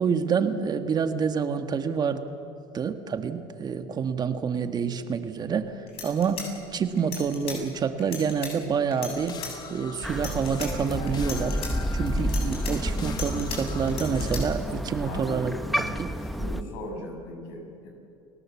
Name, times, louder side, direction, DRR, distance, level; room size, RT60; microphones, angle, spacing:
voice 1, 0.0-2.2 2.7-9.4 9.7-11.6 11.9-16.1, right 6 dB, 35° right, 8 dB, 1.6 m, -28 dB
sound 1, 5.5-5.6 5.9-7.6 8.0-8.5 8.9-9.5 10.1-10.7 11.1-11.7 12.2-13.6 13.9-14.4, left 7 dB, 55° left, 7.7 m, -36 dB
sound 2, 9.1-14.5, left 6 dB, 35° left, 1.7 m, -40 dB
Crow, 10.0-16.6, equal, ahead, 1.1 m, -30 dB
voice 2, 15.1-15.8 16.1-17.9, left 1 dB, 80° left, 1 dB, 7.2 m, -39 dB
29.5 x 17.5 x 7.3 m, 2.6 s
supercardioid pair, 100°, 12 cm